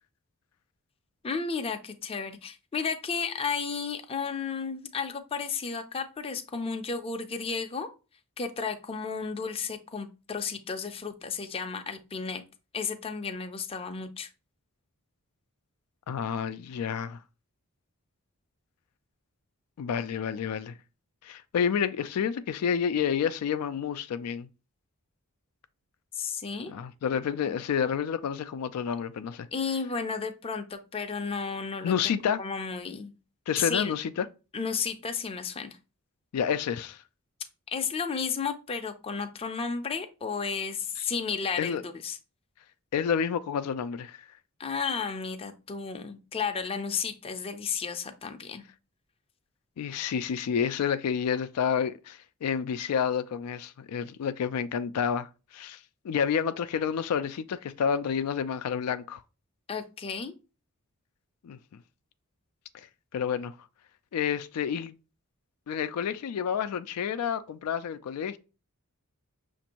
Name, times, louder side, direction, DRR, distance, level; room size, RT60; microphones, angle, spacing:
voice 1, 1.2-7.9 8.4-12.4 12.7-14.3 26.1-26.7 29.5-31.9 32.4-33.1 33.6-33.9 34.5-35.8 37.7-42.2 44.6-48.6 59.7-60.3, left 5 dB, 25° left, 0.4 m, -33 dB
voice 2, 16.1-17.2 19.8-20.8 21.2-24.5 26.7-29.5 31.8-32.4 33.5-34.3 36.3-37.0 41.6-41.8 42.9-44.2 49.8-55.8 56.0-59.2 61.4-61.6 63.1-63.5 64.1-64.9 65.7-68.4, left 7 dB, 85° left, 0.3 m, -29 dB
6.0 x 2.6 x 2.8 m
head